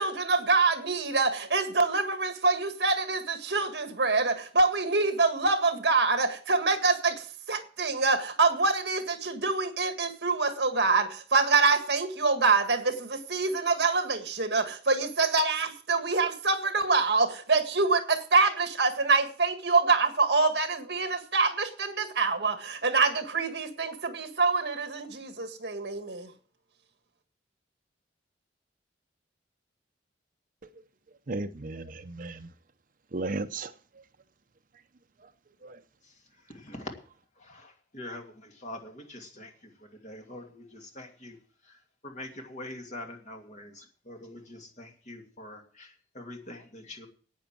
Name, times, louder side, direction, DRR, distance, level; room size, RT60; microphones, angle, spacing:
voice 1, 0.0-26.3, right 3 dB, 65° right, 1.8 m, -25 dB
voice 2, 31.3-32.5 33.1-34.0 35.6-35.8, right 2 dB, 50° right, 0.7 m, -35 dB
voice 3, 36.0-36.9 37.4-41.4 41.6-47.1, left 1 dB, 45° left, 2.6 m, -44 dB
10.5 x 9.1 x 7.6 m
head